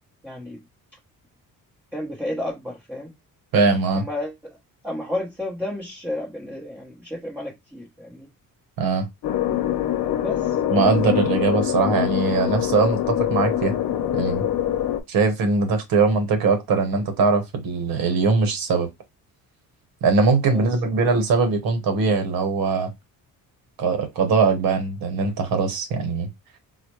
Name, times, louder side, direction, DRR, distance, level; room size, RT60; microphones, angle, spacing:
voice 1, 0.2-0.6 1.9-3.1 3.9-4.6 4.8-8.3 10.2-10.5 20.5-20.7, left 1 dB, 5° right, 0.7 m, -32 dB
voice 2, 3.5-4.0 8.8-9.1 10.7-13.7 14.1-14.4 15.1-18.9 20.0-22.9 23.8-26.3, right 4 dB, 80° right, 1.2 m, -21 dB
sound 1, 9.2-15.0, left 11 dB, 75° left, 0.7 m, -24 dB
4.1 x 2.0 x 3.0 m
cardioid pair, 140°, 35 cm